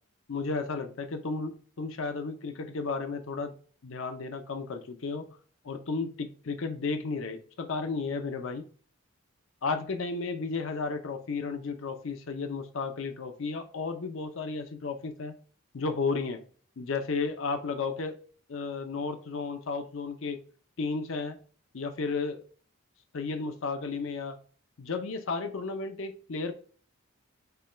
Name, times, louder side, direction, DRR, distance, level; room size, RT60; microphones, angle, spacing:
voice 1, 0.3-3.5 3.8-5.3 5.6-8.6 9.6-15.3 15.7-16.4 16.8-18.2 18.5-20.4 20.8-21.4 21.7-22.4 23.1-24.4 24.8-26.5, left 4 dB, 65° left, 7 dB, 0.5 m, -33 dB
6.7 x 2.2 x 3.2 m, 0.42 s
head